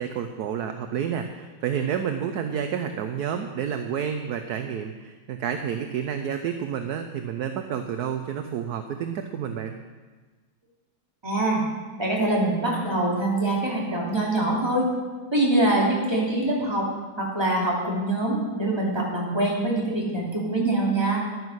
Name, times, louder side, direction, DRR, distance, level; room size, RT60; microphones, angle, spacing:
voice 1, 0.0-9.8, right 8 dB, 65° right, 7 dB, 1.0 m, -30 dB
voice 2, 11.2-11.6 12.0-14.9 15.3-16.8 17.2-21.2, right 1 dB, 10° right, -4 dB, 2.8 m, -24 dB
11.0 x 9.5 x 6.3 m, 1.3 s
omnidirectional pair, 2.2 m